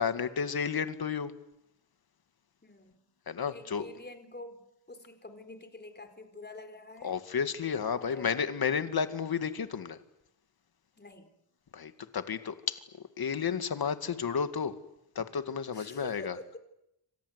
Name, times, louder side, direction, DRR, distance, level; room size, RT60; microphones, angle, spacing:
voice 1, 0.0-1.3 3.3-3.9 7.0-10.0 11.7-12.8 13.2-14.8 15.2-16.4, left 6 dB, 55° left, 10 dB, 2.1 m, -32 dB
voice 2, 2.6-3.0 3.5-4.6 4.9-7.2 7.8-8.4 11.0-11.3 15.7-16.6, left 2 dB, 20° left, 8 dB, 4.1 m, -47 dB
28.0 x 26.0 x 8.2 m, 0.84 s
wide cardioid pair, 130°, 44 cm